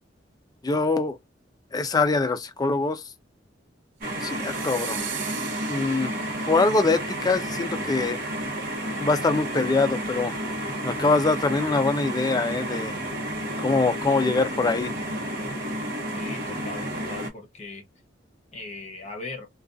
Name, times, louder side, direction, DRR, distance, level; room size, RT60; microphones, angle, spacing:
voice 1, 0.6-1.2 1.7-3.1 4.2-5.1 5.7-6.2 6.5-8.2 9.0-10.4 10.8-13.0 13.6-14.9, left 3 dB, 20° left, 0.3 m, -24 dB
sound 1, 4.0-17.3, right 1 dB, 55° right, 0.9 m, -31 dB
sound 2, 4.2-6.6, right 12 dB, 75° right, 0.4 m, -38 dB
voice 2, 16.1-17.8 18.5-19.5, left 3 dB, 35° left, 0.8 m, -39 dB
2.4 x 2.3 x 2.4 m
head